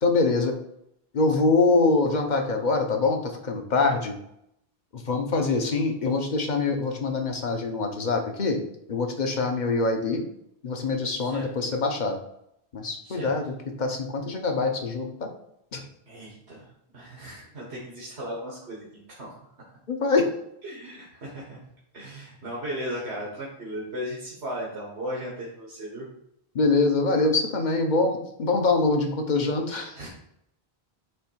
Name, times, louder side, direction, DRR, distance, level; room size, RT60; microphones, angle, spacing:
voice 1, 0.0-0.5 1.1-4.2 4.9-8.6 8.9-10.2 10.6-12.2 12.7-15.3 15.7-15.8 19.9-20.3 26.5-30.0, left 3 dB, 50° left, 4 dB, 1.0 m, -24 dB
voice 2, 16.1-16.7 16.9-19.4 20.6-21.6 21.9-26.1 29.9-30.1, equal, 90° right, -4 dB, 1.8 m, -36 dB
8.1 x 3.2 x 4.6 m, 0.77 s
omnidirectional pair, 1.1 m